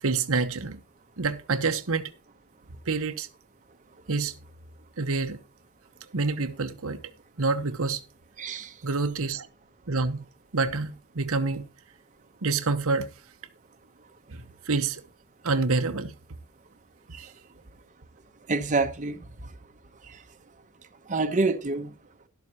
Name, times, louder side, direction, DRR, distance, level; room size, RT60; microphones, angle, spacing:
voice 1, 0.0-0.8 1.2-2.1 2.9-3.3 4.1-4.3 5.0-5.4 6.1-7.0 7.4-8.0 8.8-9.5 9.9-10.2 10.5-11.7 12.4-13.1 14.3-15.0 15.4-16.1, right 4 dB, 65° right, 1.0 m, -27 dB
voice 2, 8.4-8.7 17.1-17.3 18.5-19.2 21.1-21.9, right 3 dB, 35° right, 1.0 m, -26 dB
12.0 x 12.0 x 2.9 m
head